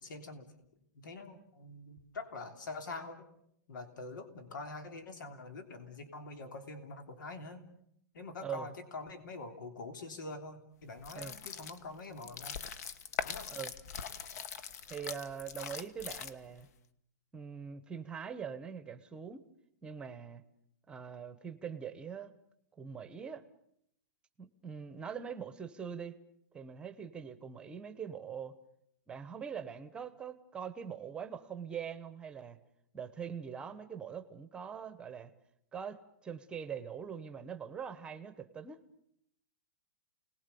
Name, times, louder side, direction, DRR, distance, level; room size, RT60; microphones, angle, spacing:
voice 1, 0.0-0.5 0.9-3.3 3.7-7.6 8.1-12.6 13.2-13.5, left 3 dB, 90° left, 7 dB, 3.2 m, -45 dB
voice 2, 8.4-8.7 11.1-11.4 13.5-13.7 14.9-16.7 17.3-19.5 19.8-20.4 20.9-22.3 22.8-23.4 24.4-26.2 26.5-28.6 29.1-32.6 32.9-35.3 35.7-38.8, right 7 dB, 10° right, 11 dB, 1.0 m, -43 dB
sound 1, 11.0-16.6, left 7 dB, 55° left, 1.4 m, -42 dB
29.5 x 19.5 x 6.9 m, 0.73 s
hypercardioid pair, 165°, 10 cm